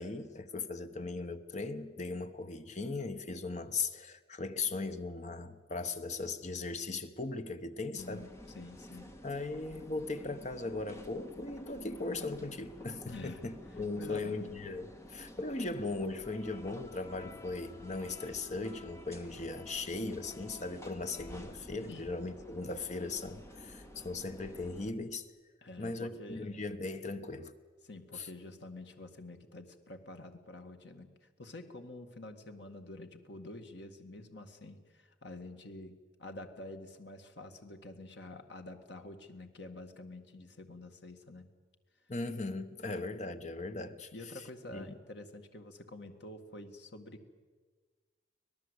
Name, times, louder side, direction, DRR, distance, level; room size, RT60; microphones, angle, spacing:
voice 1, 0.0-8.3 9.2-25.3 25.8-27.5 28.1-28.3 42.1-44.1 44.7-44.9, left 3 dB, 40° left, 1.1 m, -38 dB
voice 2, 7.9-9.1 13.1-13.5 14.0-14.5 17.2-17.4 21.9-22.1 25.6-26.7 27.8-41.5 44.1-47.4, left 2 dB, 65° left, 1.9 m, -48 dB
sound 1, 8.0-24.9, left 1 dB, 15° left, 1.6 m, -51 dB
25.5 x 18.5 x 8.2 m
head